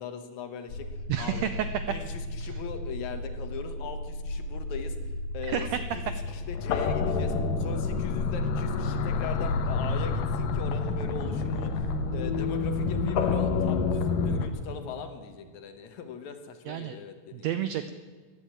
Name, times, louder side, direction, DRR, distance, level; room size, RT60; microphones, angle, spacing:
voice 1, 0.0-1.5 1.9-5.7 5.9-7.3 7.6-17.5, left 6 dB, 65° left, 8 dB, 2.4 m, -40 dB
sound 1, 0.7-14.5, left 4 dB, 85° left, 2.8 m, -29 dB
voice 2, 1.1-1.7 2.4-2.6 5.5-5.8 16.7-17.0 17.3-17.9, right 10 dB, 80° right, 10 dB, 1.5 m, -30 dB
15.5 x 10.0 x 8.8 m, 1.5 s
omnidirectional pair, 3.8 m